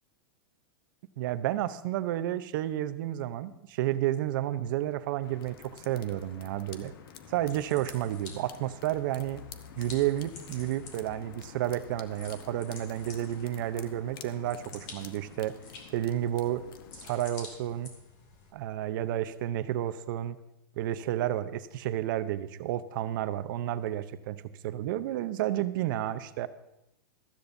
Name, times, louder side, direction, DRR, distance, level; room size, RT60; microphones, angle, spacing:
voice 1, 1.2-6.9 7.3-9.4 9.8-15.5 15.9-16.6 17.0-17.9 18.5-20.4 20.8-24.4 24.6-26.5, right 13 dB, 60° right, 13 dB, 0.7 m, -31 dB
sound 1, 5.2-17.1, left 8 dB, 70° left, 1.0 m, -49 dB
sound 2, 7.2-18.5, left 3 dB, 45° left, 2.6 m, -51 dB
15.5 x 13.0 x 2.7 m, 0.85 s
hypercardioid pair, 135°, 12 cm